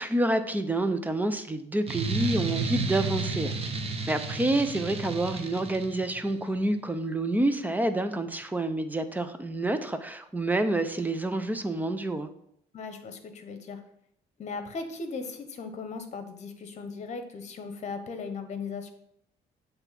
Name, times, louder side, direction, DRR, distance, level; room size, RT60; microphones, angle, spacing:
voice 1, 0.0-3.5 4.1-12.3, right 2 dB, 10° right, 9 dB, 0.6 m, -28 dB
sound 1, 1.9-6.3, right 3 dB, 35° right, 0.9 m, -32 dB
voice 2, 12.7-13.8 14.4-18.9, left 4 dB, 45° left, 7 dB, 1.1 m, -37 dB
8.0 x 3.4 x 5.8 m, 0.71 s
cardioid pair, 110°, 17 cm